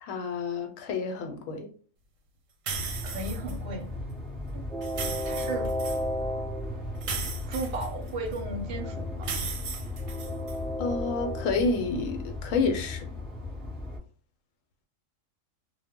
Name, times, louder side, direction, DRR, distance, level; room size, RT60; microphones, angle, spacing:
voice 1, 0.0-1.7 10.8-13.0, left 4 dB, 90° left, 1.0 m, -29 dB
Train, 2.7-14.0, left 1 dB, 5° left, 0.8 m, -34 dB
sound 1, 2.7-3.6 4.8-6.0 7.0-8.4 9.2-10.6, right 5 dB, 90° right, 1.0 m, -36 dB
voice 2, 3.0-3.9 4.5-4.6 5.0-5.7 7.5-9.4, right 3 dB, 65° right, 0.8 m, -36 dB
2.1 x 2.1 x 3.5 m
omnidirectional pair, 1.3 m